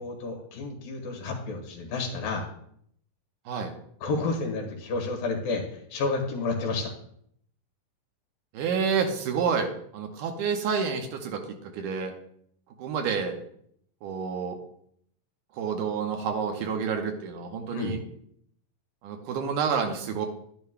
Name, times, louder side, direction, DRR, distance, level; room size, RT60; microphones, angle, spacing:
voice 1, 0.0-2.5 4.0-6.9 17.7-18.0, left 3 dB, 80° left, 2 dB, 3.3 m, -30 dB
voice 2, 8.5-12.1 12.8-13.4 14.0-14.6 15.5-18.0 19.0-20.3, right 6 dB, 75° right, 4 dB, 2.4 m, -29 dB
11.0 x 10.5 x 2.2 m, 0.68 s
omnidirectional pair, 3.9 m